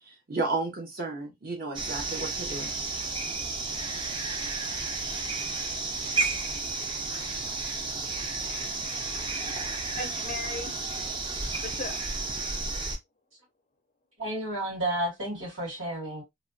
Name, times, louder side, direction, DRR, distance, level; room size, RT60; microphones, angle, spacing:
voice 1, 0.1-2.7, right 3 dB, 45° right, 0.8 m, -33 dB
sound 1, 1.7-13.0, right 3 dB, 25° right, 0.4 m, -32 dB
voice 2, 9.0-10.7 11.6-12.0, left 3 dB, 35° left, 0.4 m, -39 dB
voice 3, 14.2-16.2, right 1 dB, 70° right, 2.0 m, -31 dB
3.2 x 2.2 x 2.5 m
head